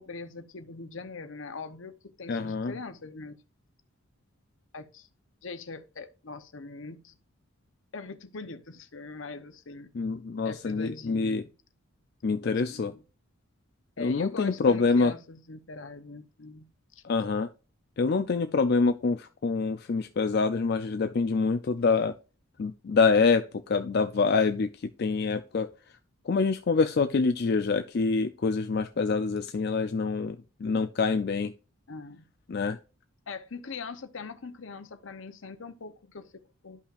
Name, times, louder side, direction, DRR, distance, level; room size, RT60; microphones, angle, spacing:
voice 1, 0.0-3.4 4.7-5.1 5.4-7.2 7.9-9.9 10.4-11.5 12.4-13.0 14.0-16.7 17.0-17.1 31.9-32.2 33.3-36.8, left 4 dB, 70° left, 0.8 m, -42 dB
voice 2, 2.3-2.7 9.9-11.5 12.2-12.9 14.0-15.1 17.0-17.5 18.0-22.1 22.6-25.7 26.3-30.4 30.6-31.5 32.5-32.8, left 4 dB, 50° left, 0.4 m, -26 dB
11.5 x 5.6 x 2.5 m
head